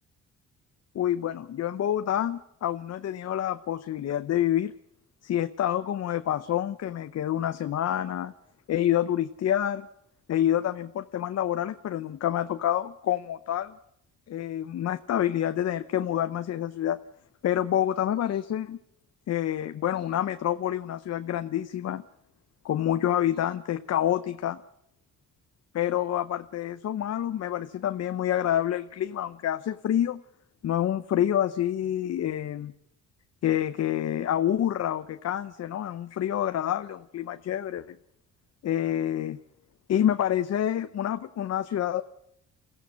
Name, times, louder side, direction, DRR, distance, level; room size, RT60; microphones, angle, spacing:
voice 1, 0.9-4.7 5.2-8.3 8.7-9.9 10.3-13.7 14.3-17.0 17.4-18.8 19.3-22.0 22.6-24.6 25.7-30.2 30.6-32.7 33.4-38.0 38.6-39.4 39.9-42.0, left 11 dB, 55° left, 10 dB, 0.8 m, -27 dB
22.5 x 15.5 x 8.4 m, 0.79 s
cardioid pair, 90°, 30 cm